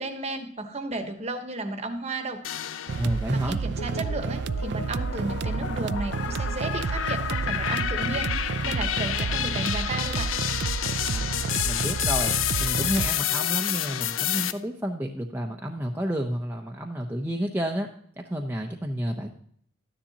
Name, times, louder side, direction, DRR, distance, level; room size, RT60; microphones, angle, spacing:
voice 1, 0.0-2.4 3.3-10.3, right 2 dB, 35° right, 7 dB, 1.1 m, -33 dB
sound 1, 2.4-3.3 3.8-14.5, left 10 dB, 90° left, 0.6 m, -29 dB
sound 2, 2.9-13.1, right 5 dB, 60° right, 0.3 m, -30 dB
voice 2, 3.0-3.6 11.1-17.9 18.2-19.3, equal, 10° right, 1 dB, 0.6 m, -30 dB
13.0 x 9.9 x 2.8 m, 0.63 s
head